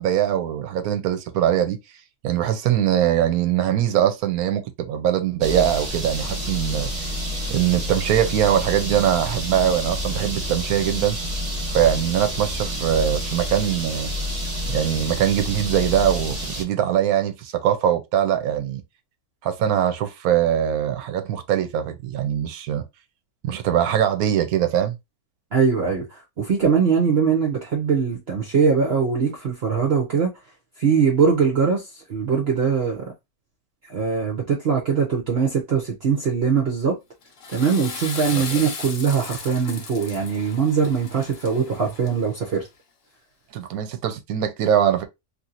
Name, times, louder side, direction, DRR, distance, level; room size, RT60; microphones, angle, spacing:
voice 1, 0.0-1.8 2.2-6.9 7.5-11.2 11.7-14.1 14.7-18.8 19.4-22.8 23.4-25.0 38.3-38.4 43.5-45.0, right 10 dB, 75° right, 1.1 m, -22 dB
sound 1, 5.4-16.6, equal, 30° right, 1.1 m, -29 dB
voice 2, 25.5-30.3 30.8-33.1 33.9-37.0 37.5-42.7, right 6 dB, 50° right, 0.9 m, -21 dB
Water / Toilet flush, 37.2-42.4, left 5 dB, 60° left, 1.2 m, -36 dB
3.0 x 2.8 x 2.5 m
omnidirectional pair, 1.6 m